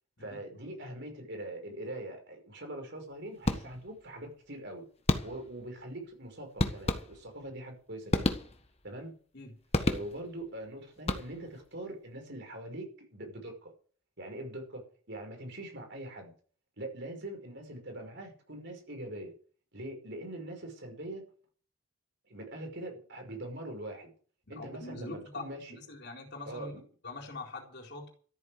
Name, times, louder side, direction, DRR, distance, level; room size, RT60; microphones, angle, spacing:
voice 1, 0.2-4.9 5.2-8.4 8.8-9.1 9.9-13.7 14.2-16.3 16.8-19.3 19.7-21.2 22.3-24.1 24.5-25.8 26.4-26.8, right 1 dB, 55° right, 4 dB, 5.6 m, -42 dB
sound 1, 3.4-4.0 5.1-5.6 6.6-7.5 8.1-8.9 9.7-10.4 11.0-11.6, left 1 dB, 30° left, 1.5 m, -31 dB
voice 2, 24.5-25.4 25.7-26.7 27.0-28.1, left 2 dB, 50° left, 2 dB, 3.9 m, -43 dB
14.0 x 9.2 x 7.9 m, 0.43 s
head